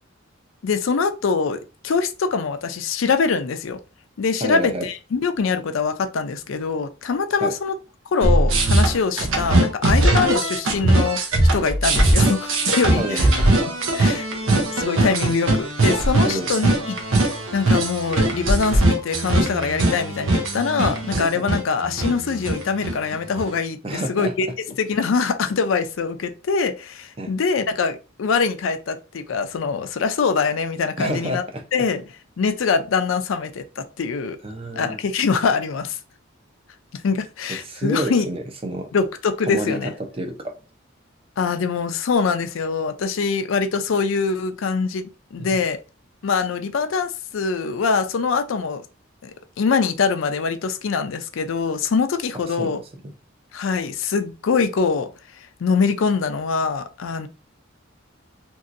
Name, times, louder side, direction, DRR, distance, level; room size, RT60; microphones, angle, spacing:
voice 1, 0.6-3.8 4.2-7.8 8.1-11.2 11.5-13.4 13.9-24.5 24.8-31.4 31.7-32.0 32.4-34.4 34.8-36.0 36.9-38.2 38.9-39.9 41.4-45.8 46.2-48.8 49.2-49.3 49.6-52.8 53.5-55.1 55.6-57.3, left 5 dB, 75° left, 0.4 m, -23 dB
voice 2, 4.4-4.9 7.4-7.5 13.0-13.3 16.2-16.5 21.3-21.4 23.8-24.3 27.2-27.3 31.0-31.6 34.4-35.0 37.5-38.9 39.4-39.8 40.1-40.5 45.4-45.6 52.6-52.8 53.0-53.1, right 1 dB, 30° right, 0.5 m, -28 dB
sound 1, 8.2-23.5, right 1 dB, 90° right, 0.7 m, -20 dB
3.0 x 2.7 x 2.5 m
head